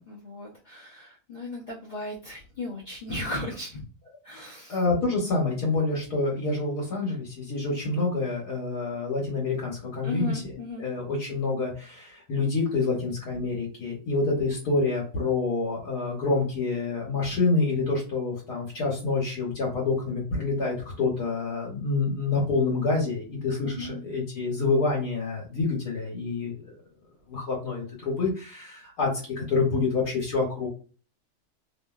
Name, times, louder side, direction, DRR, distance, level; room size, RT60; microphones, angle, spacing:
voice 1, 0.0-3.8 4.2-4.8 10.0-10.9 23.6-24.0, left 1 dB, 45° left, -6 dB, 0.6 m, -36 dB
voice 2, 4.7-26.7 27.3-30.7, left 3 dB, 75° left, -3 dB, 1.4 m, -27 dB
2.7 x 2.7 x 2.3 m, 0.38 s
omnidirectional pair, 1.6 m